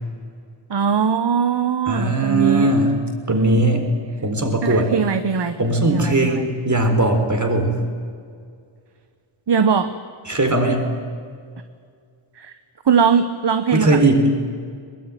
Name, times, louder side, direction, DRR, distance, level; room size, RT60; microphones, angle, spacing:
voice 1, 0.7-2.7 3.3-3.7 4.6-5.6 5.9-6.4 9.5-9.9 12.4-12.5 12.9-14.0, right 6 dB, 55° right, 9 dB, 1.1 m, -20 dB
voice 2, 1.9-3.0 3.3-3.8 4.2-4.9 5.6-7.8 10.3-10.8 13.7-14.2, right 2 dB, 35° right, 4 dB, 4.1 m, -19 dB
22.0 x 21.5 x 9.2 m, 2.2 s
wide cardioid pair, 90°, 50 cm